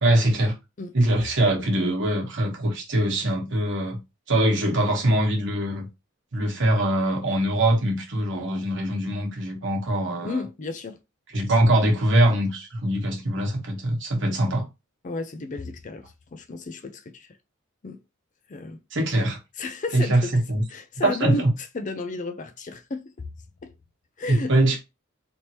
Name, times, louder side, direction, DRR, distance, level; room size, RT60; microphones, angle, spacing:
voice 1, 0.0-0.5 0.9-4.0 4.3-5.9 6.3-10.4 11.3-14.7 18.9-19.4 19.9-20.6 21.0-21.5 24.3-24.8, right 1 dB, 60° right, 1.3 m, -22 dB
voice 2, 10.2-11.0 15.0-17.3 17.8-18.0 18.5-18.8 19.6-20.4 20.7-21.4 21.7-23.1 23.6-23.7 24.2-24.5, left 3 dB, 40° left, 0.5 m, -32 dB
3.5 x 2.8 x 3.0 m
head